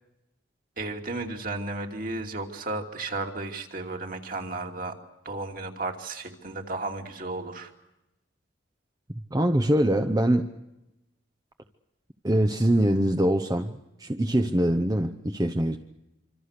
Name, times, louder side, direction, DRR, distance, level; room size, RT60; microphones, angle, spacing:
voice 1, 0.8-5.0 5.2-7.7, right 2 dB, 45° right, 2 dB, 2.7 m, -34 dB
voice 2, 9.3-10.5 12.2-15.8, right 1 dB, 20° right, 7 dB, 0.8 m, -23 dB
26.5 x 25.5 x 6.7 m, 0.94 s
head